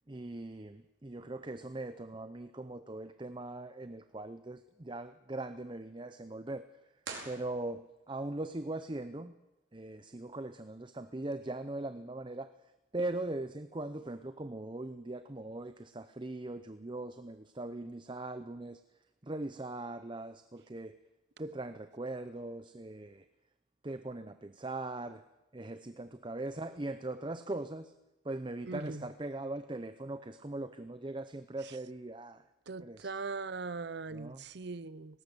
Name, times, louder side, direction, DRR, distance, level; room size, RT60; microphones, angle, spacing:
voice 1, 0.1-6.7 7.2-9.3 9.7-12.5 12.9-18.8 19.2-21.0 21.4-23.3 23.8-25.2 25.5-27.9 28.2-32.4 32.8-33.1 34.1-34.4, right 2 dB, 25° right, 0.7 m, -40 dB
sound 1, 7.0-8.2, right 4 dB, 75° right, 4.8 m, -46 dB
voice 2, 28.7-29.0 32.7-35.2, right 4 dB, 60° right, 0.7 m, -40 dB
19.0 x 18.5 x 7.8 m
head